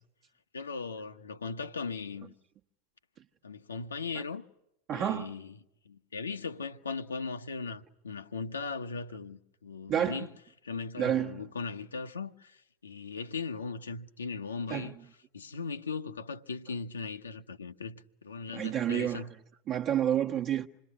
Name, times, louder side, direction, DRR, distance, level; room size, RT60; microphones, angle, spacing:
voice 1, 0.5-2.3 3.4-4.5 4.9-5.5 5.8-10.3 10.6-14.9 15.3-19.3, left 4 dB, 75° left, 1.2 m, -38 dB
voice 2, 4.9-5.3 9.9-10.3 11.0-11.5 14.7-15.0 18.5-19.3 19.7-20.7, right 10 dB, 35° right, 1.2 m, -30 dB
27.0 x 21.0 x 9.8 m
figure-of-eight pair, 90°, 0 cm